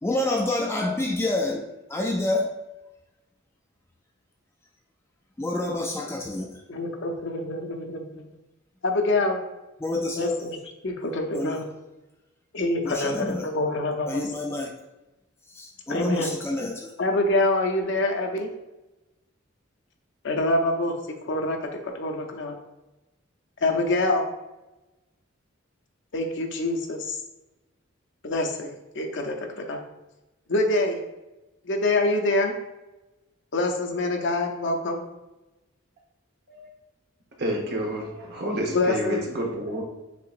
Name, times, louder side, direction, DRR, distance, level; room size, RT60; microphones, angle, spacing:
voice 1, 0.0-1.6 1.9-2.5 5.4-6.6 9.8-10.5 11.3-11.6 12.8-13.5 14.1-14.7 15.5-16.9, left 2 dB, 10° left, 1 dB, 0.3 m, -27 dB
voice 2, 6.7-8.3 8.8-9.4 10.2-10.6 10.8-11.7 12.5-14.2 15.9-16.3 17.0-18.5 20.2-20.9 21.2-21.6 21.8-22.6 23.6-24.2 26.1-27.2 28.2-29.8 30.5-31.0 31.6-32.5 33.5-35.0 38.7-39.3, left 2 dB, 65° left, 4 dB, 0.6 m, -25 dB
voice 3, 37.4-38.0 38.4-39.0 39.4-39.8, right 1 dB, 55° right, 0 dB, 1.0 m, -28 dB
6.7 x 2.9 x 2.5 m, 1.0 s
head